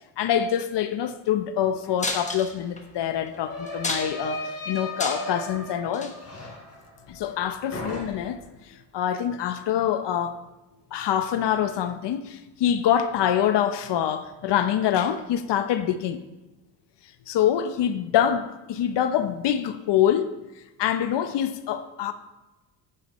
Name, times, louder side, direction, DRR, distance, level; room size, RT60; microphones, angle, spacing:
voice 1, 0.2-6.2 7.1-8.4 8.7-10.4 10.9-16.2 17.3-20.3 20.8-22.1, left 10 dB, 60° left, 0.8 m, -25 dB
sound 1, 1.8-1.9 2.2-7.4 7.7-8.5, left 1 dB, 30° left, 3.7 m, -37 dB
sound 2, 2.0-2.8 3.3-3.4 3.7-4.3 4.8-5.4 5.9-6.1 7.1-7.2, left 2 dB, 15° left, 1.2 m, -30 dB
9.6 x 9.5 x 3.1 m
cardioid pair, 100°, 47 cm